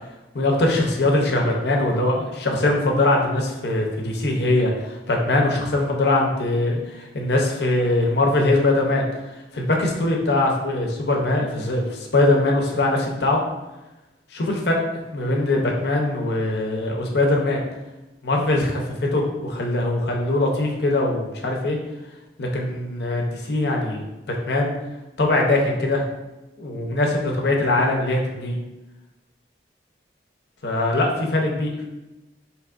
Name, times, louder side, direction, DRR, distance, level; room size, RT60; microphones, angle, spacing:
voice 1, 0.3-9.0 9.5-13.4 14.3-14.8 15.1-17.6 18.2-21.8 22.4-24.7 25.2-26.0 26.6-28.6 30.6-31.7, left 2 dB, 65° left, 0 dB, 0.6 m, -22 dB
4.5 x 2.9 x 2.4 m, 1.0 s
head